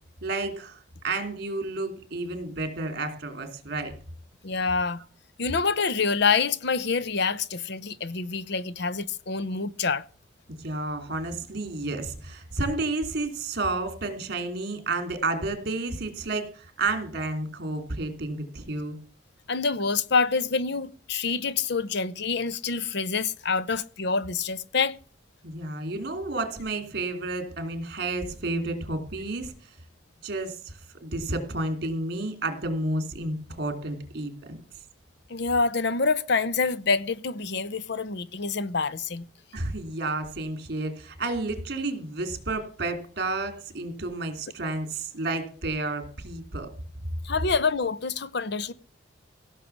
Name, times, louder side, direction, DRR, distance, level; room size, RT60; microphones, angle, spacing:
voice 1, 0.2-3.9 10.5-19.0 25.4-29.7 30.2-30.7 31.0-34.6 39.5-46.7, right 2 dB, 55° right, 3.1 m, -31 dB
voice 2, 4.4-5.0 5.4-10.0 19.5-25.0 35.3-39.2 47.2-48.7, left 4 dB, 60° left, 0.7 m, -26 dB
16.5 x 6.5 x 7.1 m
head